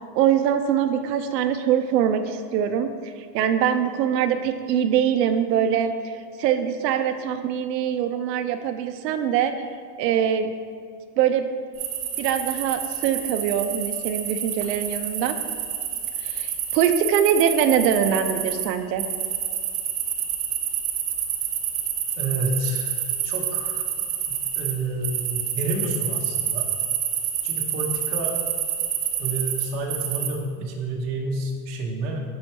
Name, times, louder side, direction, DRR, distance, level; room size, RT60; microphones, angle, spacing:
voice 1, 0.1-9.7 10.0-10.5 11.2-11.5 12.2-15.4 16.2-19.1, right 8 dB, 90° right, 8 dB, 0.6 m, -23 dB
sound 1, 11.8-18.7 19.0-24.7 25.0-30.3, right 9 dB, 55° right, 1.0 m, -28 dB
voice 2, 22.2-23.0 23.2-23.8 24.3-26.7 27.4-28.3 29.2-32.2, right 2 dB, 35° right, 0 dB, 0.8 m, -29 dB
5.5 x 4.3 x 4.5 m, 2.1 s
supercardioid pair, 150°, 48 cm